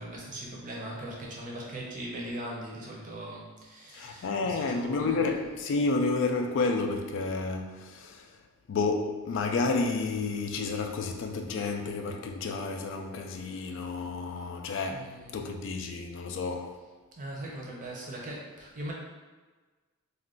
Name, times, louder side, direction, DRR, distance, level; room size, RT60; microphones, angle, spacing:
voice 1, 0.0-5.3 14.9-15.4 17.2-18.9, right 1 dB, 40° right, 0.6 m, -40 dB
voice 2, 3.9-8.3 8.7-16.8, left 3 dB, 60° left, 0.3 m, -30 dB
2.4 x 2.2 x 3.6 m
head